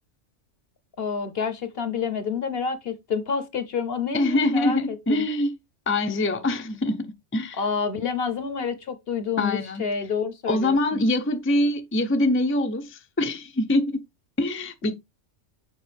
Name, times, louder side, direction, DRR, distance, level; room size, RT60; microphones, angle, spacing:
voice 1, 1.0-5.2 7.6-11.0, left 6 dB, 55° left, 1.1 m, -28 dB
voice 2, 4.1-5.5 5.9-7.6 9.4-9.8 10.5-14.0 14.4-14.9, left 1 dB, 15° left, 0.6 m, -24 dB
7.5 x 5.2 x 3.4 m
omnidirectional pair, 1.2 m